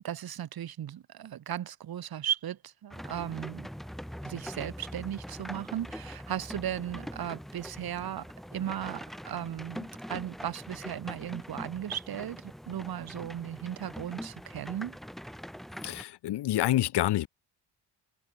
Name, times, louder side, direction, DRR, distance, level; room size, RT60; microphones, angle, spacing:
voice 1, 0.0-3.7 4.2-8.3 8.5-15.0, right 10 dB, 60° right, 4.9 m, -36 dB
sound 1, 2.9-16.0, equal, ahead, 5.7 m, -43 dB
voice 2, 15.8-17.3, left 14 dB, 70° left, 1.5 m, -27 dB
open air
cardioid pair, 140°, 41 cm